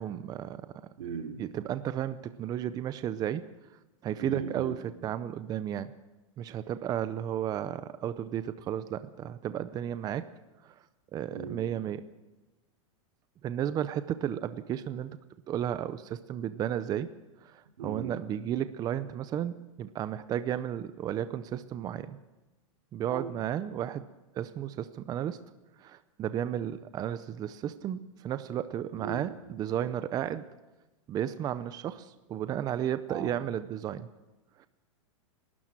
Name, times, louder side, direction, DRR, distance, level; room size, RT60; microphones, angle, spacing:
voice 1, 0.0-0.8 1.4-3.4 4.0-4.8 5.0-5.9 6.4-10.3 10.6-10.8 11.1-12.1 13.4-15.2 15.5-17.1 17.4-22.2 22.9-24.1 24.3-25.4 25.8-30.4 31.1-34.1 34.6-34.7, right 10 dB, 20° right, 13 dB, 0.6 m, -33 dB
voice 2, 1.0-1.4 4.2-4.8 11.3-11.6 17.8-18.1 23.1-23.3 28.9-29.2 33.1-33.3, right 6 dB, 85° right, 4 dB, 3.2 m, -37 dB
29.5 x 12.5 x 7.5 m, 1.1 s
supercardioid pair, 150°, 17 cm